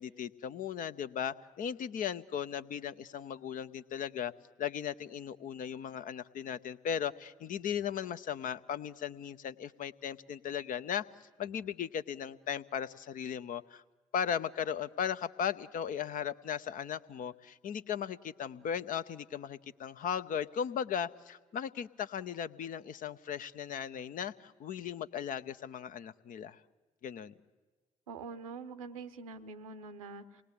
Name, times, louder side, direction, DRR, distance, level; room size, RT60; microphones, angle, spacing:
voice 1, 0.0-4.3 4.6-11.0 11.4-13.8 14.1-26.6 27.0-27.3, left 8 dB, 50° left, 12 dB, 0.7 m, -37 dB
voice 2, 28.1-30.4, right 4 dB, 80° right, 12 dB, 0.8 m, -45 dB
26.5 x 20.0 x 8.4 m, 1.3 s
figure-of-eight pair, 40°, 17 cm